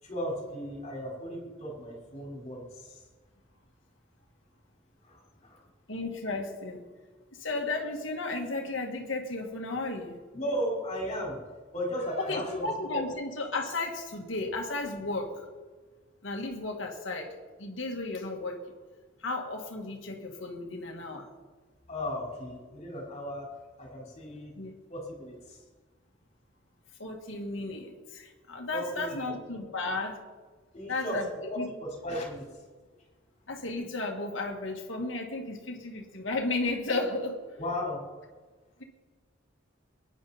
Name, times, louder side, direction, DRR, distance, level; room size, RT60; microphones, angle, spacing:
voice 1, 0.0-3.0 5.0-5.6 10.3-11.4 11.7-12.7 12.9-13.0 21.9-23.5 23.8-24.5 24.9-25.6 28.7-29.3 30.7-31.2 31.5-31.6 32.0-32.5 37.6-38.0, equal, 35° left, -2 dB, 4.7 m, -35 dB
voice 2, 5.9-6.9 7.3-10.2 12.2-15.5 16.2-18.7 19.2-21.3 24.6-24.7 27.0-30.2 30.9-31.7 33.5-37.4, left 2 dB, 75° left, 1 dB, 2.2 m, -34 dB
22.5 x 10.5 x 4.4 m, 1.4 s
head